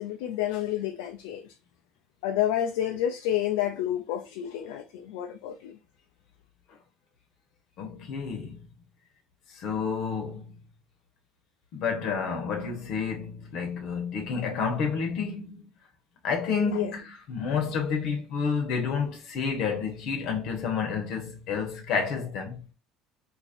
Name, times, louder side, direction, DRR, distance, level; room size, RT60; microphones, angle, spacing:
voice 1, 0.0-1.5 2.2-5.8 16.7-16.9, left 11 dB, 85° left, 0.5 m, -29 dB
voice 2, 7.8-8.7 9.5-10.5 11.7-15.5 16.2-22.6, left 5 dB, 65° left, 1.0 m, -30 dB
2.9 x 2.6 x 4.2 m
cardioid pair, 120°, 0 cm